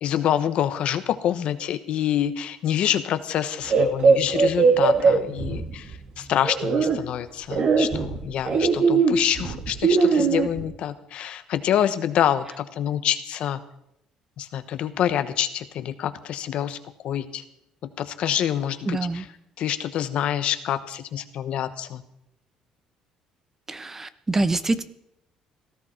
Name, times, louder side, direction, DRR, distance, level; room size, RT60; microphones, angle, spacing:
voice 1, 0.0-13.6 14.4-16.8 17.0-17.4 17.8-19.3 19.6-22.0, left 10 dB, 65° left, 11 dB, 1.1 m, -26 dB
sound 1, 3.7-6.0 6.4-7.0 7.5-10.6, right 5 dB, 55° right, 2.2 m, -20 dB
voice 2, 18.9-19.2 23.7-24.8, right 2 dB, 20° right, 12 dB, 0.9 m, -25 dB
17.5 x 14.0 x 4.5 m, 0.80 s
cardioid pair, 105°, 2 cm